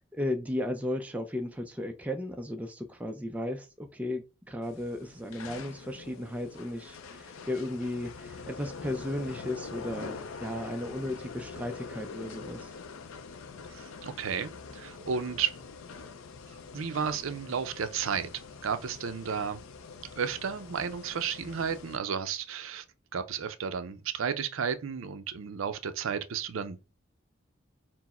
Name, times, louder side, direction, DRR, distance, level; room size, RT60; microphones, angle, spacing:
voice 1, 0.1-12.7, left 1 dB, 5° right, 0.4 m, -35 dB
sound 1, 4.6-22.0, left 5 dB, 80° left, 0.5 m, -45 dB
voice 2, 13.7-15.6 16.7-18.3 18.6-19.6 20.2-22.8 23.1-26.8, right 7 dB, 75° right, 0.5 m, -33 dB
4.5 x 2.0 x 4.1 m
head